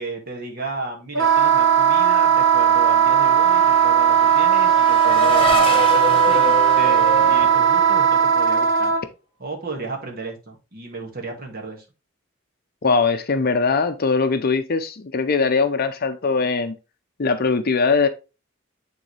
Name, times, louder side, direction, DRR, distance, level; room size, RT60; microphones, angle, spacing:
voice 1, 0.0-8.9 9.4-11.9, right 3 dB, 45° right, 1.8 m, -33 dB
Wind instrument woodwind instrument, 1.1-9.0, right 8 dB, 60° right, 1.2 m, -17 dB
Race car auto racing / Accelerating revving vroom, 2.4-8.5, left 2 dB, 25° left, 1.4 m, -27 dB
voice 2, 12.8-16.7 17.2-18.1, left 4 dB, 45° left, 0.6 m, -21 dB
8.9 x 3.8 x 3.2 m
head